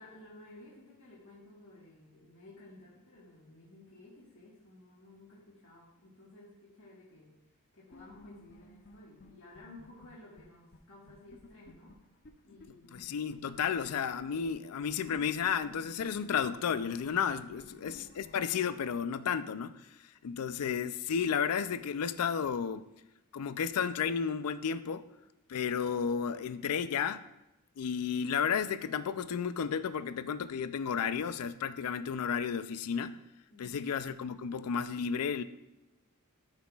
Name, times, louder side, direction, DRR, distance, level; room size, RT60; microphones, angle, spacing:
voice 1, 0.0-7.3 7.7-12.0 12.4-13.3 17.6-18.1 33.5-33.9, left 2 dB, 65° left, -6 dB, 1.5 m, -55 dB
sound 1, 7.9-10.4 10.7-10.8 11.1-12.7 12.9-13.0 13.3-18.5, left 2 dB, 45° left, 0.6 m, -55 dB
voice 2, 12.9-19.7 20.2-22.9 23.3-25.0 25.5-27.3 27.8-33.2 33.6-35.4, left 7 dB, 90° left, 13 dB, 0.4 m, -32 dB
12.5 x 5.7 x 2.4 m, 0.94 s
head